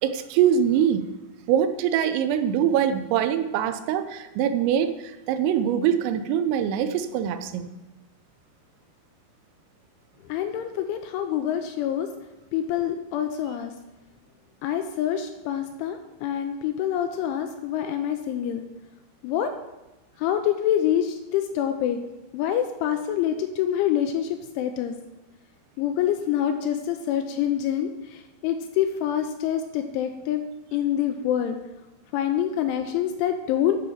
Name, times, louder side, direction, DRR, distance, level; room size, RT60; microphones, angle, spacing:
voice 1, 0.0-1.1 1.5-7.7, right 9 dB, 90° right, 9 dB, 3.3 m, -23 dB
voice 2, 10.3-12.1 12.5-13.7 14.6-18.6 19.2-19.5 20.2-22.0 22.3-24.9 25.8-30.4 30.7-31.6 32.1-33.8, left 10 dB, 85° left, 7 dB, 2.8 m, -26 dB
11.5 x 5.1 x 5.7 m, 1.0 s
omnidirectional pair, 5.8 m